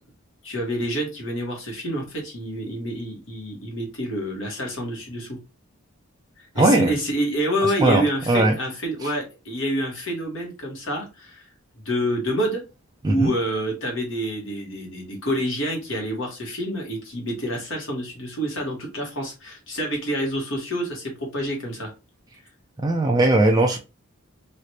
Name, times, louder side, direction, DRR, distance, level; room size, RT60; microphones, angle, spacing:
voice 1, 0.4-5.4 6.4-11.5 11.8-12.6 13.0-21.9, equal, 60° left, 1.2 m, -27 dB
voice 2, 6.6-6.9 7.8-8.6 13.0-13.3 22.8-23.8, right 2 dB, 20° right, 0.3 m, -19 dB
3.2 x 2.5 x 2.8 m
head